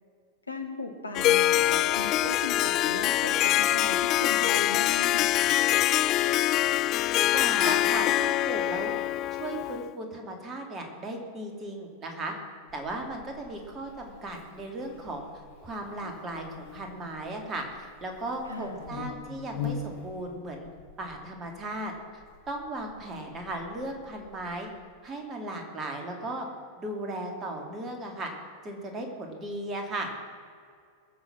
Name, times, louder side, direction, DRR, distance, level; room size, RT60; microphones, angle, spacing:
voice 1, 0.5-5.3 18.4-18.8, left 2 dB, 80° left, 4 dB, 1.4 m, -37 dB
Harp, 1.2-9.9, left 14 dB, 35° left, 0.3 m, -24 dB
voice 2, 7.3-8.9 9.4-12.3 12.7-15.3 15.6-20.7 21.0-24.7 25.0-26.5 26.8-28.3 28.6-30.1, right 1 dB, 25° right, 2 dB, 2.6 m, -36 dB
Buzz, 12.7-24.8, left 5 dB, 55° left, 2.1 m, -44 dB
21.5 x 7.1 x 6.1 m, 2.2 s
figure-of-eight pair, 90°, 0 cm